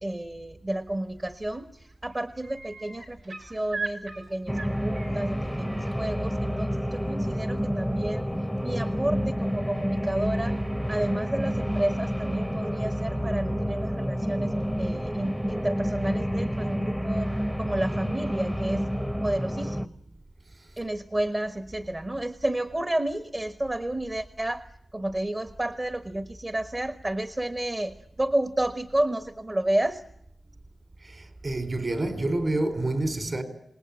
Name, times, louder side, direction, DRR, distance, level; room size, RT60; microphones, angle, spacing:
voice 1, 0.0-8.3 8.6-10.6 10.9-17.3 17.6-18.9 19.2-20.0 20.8-30.0, right 1 dB, 25° right, 1.3 m, -31 dB
sound 1, 1.2-1.6 1.9-5.9 7.6-7.7, right 4 dB, 70° right, 5.0 m, -39 dB
sound 2, 4.5-19.9, equal, 5° right, 0.9 m, -29 dB
voice 2, 31.0-33.4, right 2 dB, 45° right, 4.6 m, -28 dB
27.5 x 19.5 x 8.7 m
wide cardioid pair, 80°, 0 cm